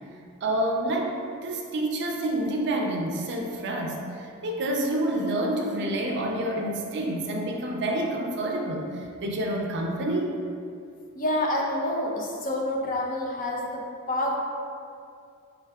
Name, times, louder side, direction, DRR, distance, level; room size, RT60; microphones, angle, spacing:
voice 1, 0.4-1.1 1.4-10.4, right 1 dB, 55° right, 1 dB, 0.5 m, -28 dB
voice 2, 11.2-14.4, left 1 dB, 40° left, -2 dB, 0.6 m, -28 dB
4.5 x 3.7 x 2.3 m, 2.4 s
head